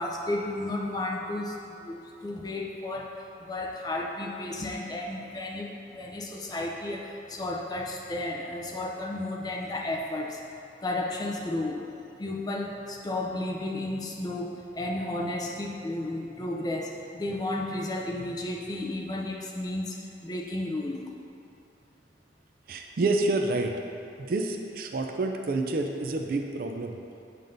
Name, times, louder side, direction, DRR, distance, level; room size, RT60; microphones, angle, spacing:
voice 1, 0.0-3.1 3.4-10.4 10.8-11.8 12.2-21.0, left 1 dB, 20° left, 0 dB, 0.4 m, -33 dB
voice 2, 22.7-23.7 24.2-27.0, right 2 dB, 50° right, 3 dB, 0.4 m, -28 dB
7.5 x 5.2 x 2.6 m, 2.7 s
head